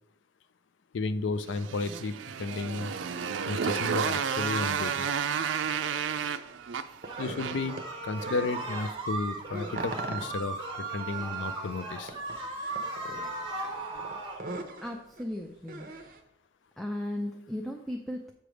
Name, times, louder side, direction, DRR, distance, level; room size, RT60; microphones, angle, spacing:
voice 1, 0.9-2.9 3.5-5.1 7.2-7.7 8.0-10.6 10.9-12.1, left 3 dB, 80° left, 12 dB, 0.4 m, -33 dB
Motorcycle, 1.5-7.8, right 7 dB, 80° right, 0.4 m, -31 dB
sound 1, 4.6-6.3 6.6-8.8 9.1-16.2, right 2 dB, 45° right, 0.8 m, -42 dB
sound 2, 7.0-14.4, right 3 dB, 30° right, 1.4 m, -37 dB
voice 2, 14.8-15.9 16.8-18.3, left 1 dB, ahead, 2 dB, 0.5 m, -36 dB
7.8 x 3.4 x 6.3 m, 0.83 s
head